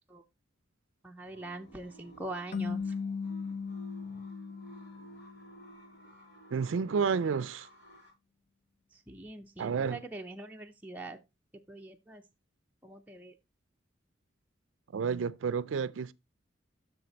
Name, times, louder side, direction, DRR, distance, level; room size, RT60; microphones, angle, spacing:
voice 1, 1.0-2.9 8.9-11.2 11.5-12.2 12.8-13.4, right 2 dB, 10° right, 0.6 m, -43 dB
sound 1, 1.2-8.1, right 2 dB, 65° left, 5.8 m, -55 dB
sound 2, 2.5-5.7, left 5 dB, 45° left, 0.5 m, -37 dB
voice 2, 6.5-7.7 9.6-10.0 14.9-16.1, right 6 dB, 80° right, 0.4 m, -30 dB
7.6 x 6.3 x 3.9 m
head